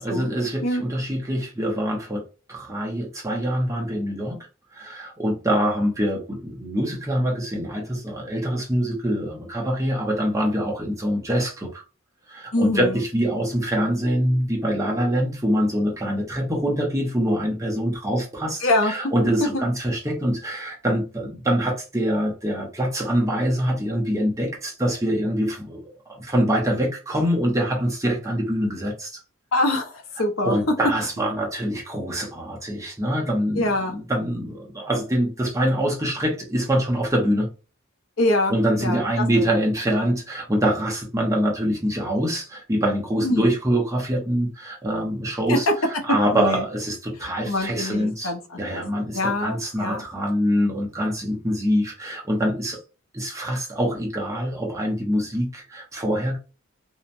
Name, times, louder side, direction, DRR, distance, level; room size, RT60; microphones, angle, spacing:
voice 1, 0.0-2.2 2.5-4.4 4.7-11.8 12.3-29.2 30.4-37.5 38.5-48.3 48.6-52.8 53.1-56.4, equal, 15° right, 0.7 m, -24 dB
voice 2, 12.5-13.0 18.6-19.1 19.4-19.5 29.5-30.6 33.6-34.0 38.2-39.5 43.2-43.5 45.5-45.7 46.3-46.6 47.5-48.8 49.1-50.0, left 2 dB, 80° left, 0.8 m, -24 dB
2.8 x 2.1 x 2.5 m
head